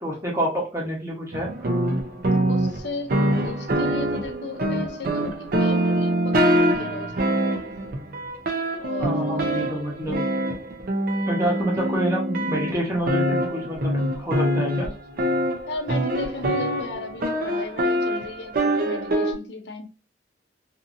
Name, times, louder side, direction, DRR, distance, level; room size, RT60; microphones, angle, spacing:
voice 1, 0.0-1.7 9.0-10.2 11.3-13.9 14.2-14.9, right 1 dB, 15° right, 1.0 m, -27 dB
sound 1, 1.3-19.3, right 1 dB, 55° right, 0.6 m, -24 dB
voice 2, 2.5-3.1 3.4-7.9 8.8-9.6 11.4-11.6 15.7-19.9, left 3 dB, 70° left, 0.6 m, -36 dB
2.7 x 2.6 x 2.5 m
head